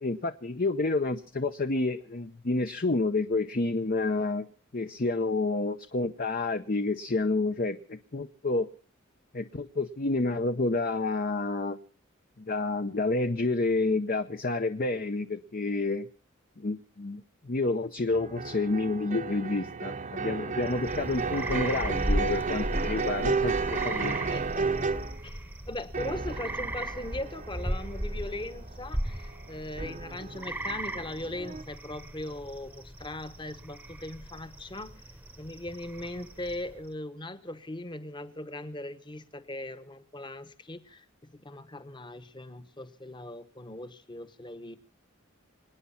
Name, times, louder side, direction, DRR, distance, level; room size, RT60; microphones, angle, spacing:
voice 1, 0.0-4.5 4.7-8.7 9.3-11.8 12.4-16.1 16.6-24.2, left 3 dB, 45° left, 8 dB, 0.8 m, -29 dB
sound 1, 18.1-25.3 25.9-31.6, right 4 dB, 40° right, 0.9 m, -33 dB
sound 2, 20.6-36.9, right 1 dB, 10° right, 1.0 m, -36 dB
voice 2, 24.3-24.7 25.2-34.9 35.4-41.0 41.4-44.8, left 1 dB, 20° left, 11 dB, 1.1 m, -39 dB
26.0 x 9.6 x 5.7 m, 0.43 s
head